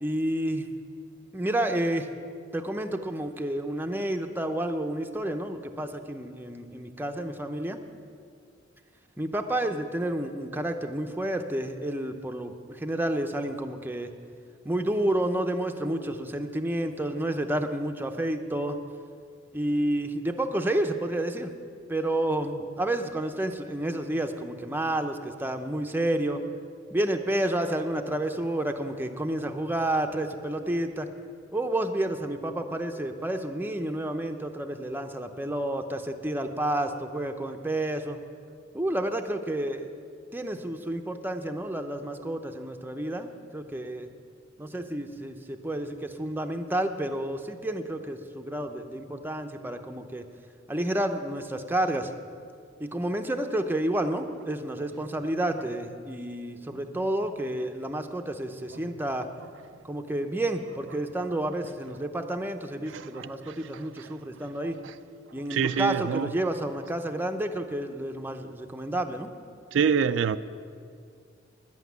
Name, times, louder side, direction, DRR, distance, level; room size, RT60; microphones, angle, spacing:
voice 1, 0.0-0.7 1.3-2.1 2.5-7.8 9.2-14.1 14.6-18.8 19.5-21.5 21.9-26.4 26.9-31.1 31.5-38.2 38.7-39.9 40.3-44.1 44.6-50.3 50.7-52.1 52.8-59.3 59.8-64.8 65.3-69.3, right 1 dB, 10° right, 0.6 m, -30 dB
voice 2, 62.9-63.7 64.0-64.1 64.8-64.9 65.5-66.3 69.7-70.4, right 7 dB, 75° right, 0.4 m, -27 dB
10.5 x 8.2 x 9.4 m
head